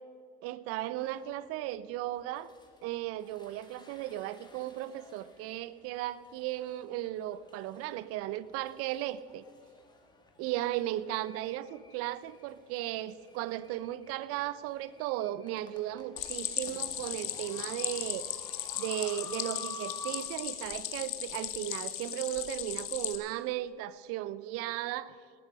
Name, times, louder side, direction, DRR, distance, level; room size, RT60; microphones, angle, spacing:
voice 1, 0.4-2.5 2.8-9.5 10.4-18.3 18.7-25.1, right 14 dB, 50° right, 17 dB, 0.7 m, -36 dB
sound 1, 1.0-1.5 2.0-20.3, left 3 dB, 15° left, 2.1 m, -52 dB
Stream, 16.2-23.2, left 12 dB, 45° left, 1.4 m, -37 dB
19.0 x 9.3 x 5.2 m, 2.2 s
hypercardioid pair, 85°, 30 cm